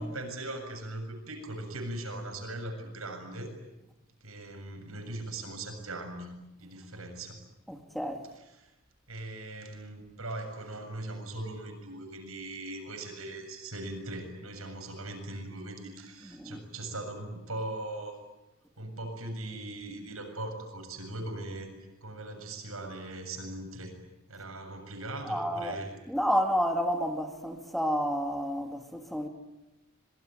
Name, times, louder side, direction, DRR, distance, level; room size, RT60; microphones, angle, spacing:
voice 1, 0.0-3.5 4.2-6.3 6.6-7.4 8.3-8.7 9.1-18.2 18.8-21.7 22.0-23.9 24.3-25.9, right 2 dB, 90° right, 7.4 m, -40 dB
voice 2, 7.7-8.2 16.4-16.6 25.3-25.8 26.1-29.3, equal, ahead, 2.3 m, -30 dB
26.5 x 23.0 x 9.2 m
head